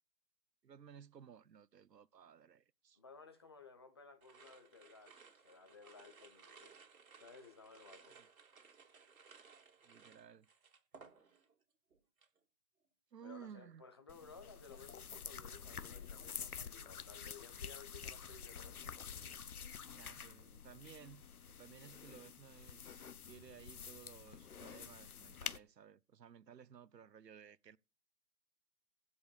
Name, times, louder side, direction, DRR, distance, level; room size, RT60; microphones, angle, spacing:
voice 1, 0.6-3.0 8.1-8.3 9.8-10.5 13.1-13.9 20.0-27.8, right 8 dB, 80° right, 0.8 m, -57 dB
voice 2, 3.0-6.8 7.2-8.4 13.2-18.9, left 4 dB, 15° left, 0.7 m, -58 dB
sound 1, 4.2-11.6 11.9-12.4, right 5 dB, 55° right, 2.9 m, -61 dB
sound 2, 14.1-25.6, left 7 dB, 60° left, 1.0 m, -49 dB
15.5 x 5.5 x 6.7 m
figure-of-eight pair, 150°, 49 cm